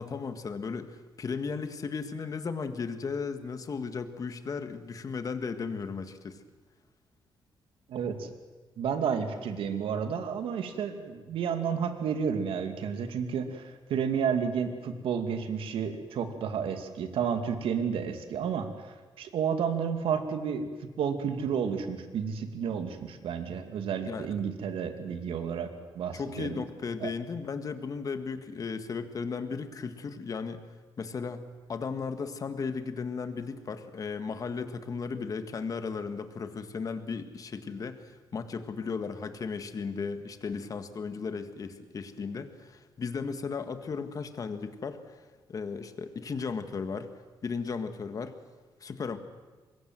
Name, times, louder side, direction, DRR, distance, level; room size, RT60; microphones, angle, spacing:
voice 1, 0.0-6.4 24.0-24.3 26.1-30.6 31.0-47.1 47.4-48.4 48.8-49.2, left 5 dB, 40° left, 9 dB, 1.8 m, -35 dB
voice 2, 7.9-8.3 8.8-18.9 19.2-20.7 21.0-25.7 25.9-26.6 27.0-27.1, right 7 dB, 85° right, 7 dB, 2.5 m, -31 dB
25.0 x 21.5 x 7.7 m, 1.3 s
cardioid pair, 125°, 9 cm